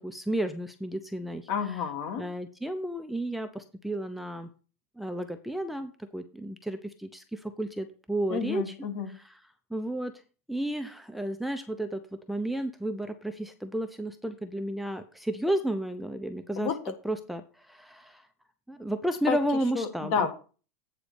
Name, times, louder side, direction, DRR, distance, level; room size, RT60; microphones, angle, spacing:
voice 1, 0.0-1.8 2.1-4.5 5.0-8.7 9.1-9.4 9.7-10.1 10.5-16.7 17.0-18.3 18.7-20.3, right 1 dB, ahead, 8 dB, 0.6 m, -32 dB
voice 2, 1.5-2.2 8.3-9.1 16.6-16.8 19.3-19.4 19.8-20.3, left 6 dB, 55° left, 6 dB, 1.8 m, -30 dB
8.8 x 4.0 x 6.8 m, 0.37 s
supercardioid pair, 130°, 8 cm